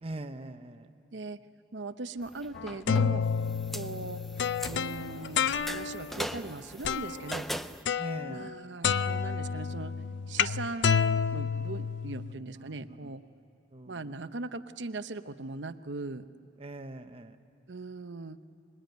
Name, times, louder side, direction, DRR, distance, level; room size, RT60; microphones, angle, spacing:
voice 1, 0.0-0.9 8.0-8.5 12.5-12.7 13.0-13.1 13.7-14.0 16.6-17.4, right 2 dB, 30° right, 7 dB, 1.0 m, -41 dB
voice 2, 1.7-3.2 3.7-4.2 4.6-7.5 8.3-9.9 10.3-13.2 13.9-16.2 17.7-18.4, right 3 dB, 80° right, 10 dB, 0.9 m, -39 dB
sound 1, 2.2-7.8, equal, ahead, 0.5 m, -41 dB
sound 2, 2.6-6.1 6.8-7.3 7.9-8.6 8.8-12.3, left 6 dB, 80° left, 0.5 m, -30 dB
26.0 x 21.5 x 9.3 m, 2.8 s
head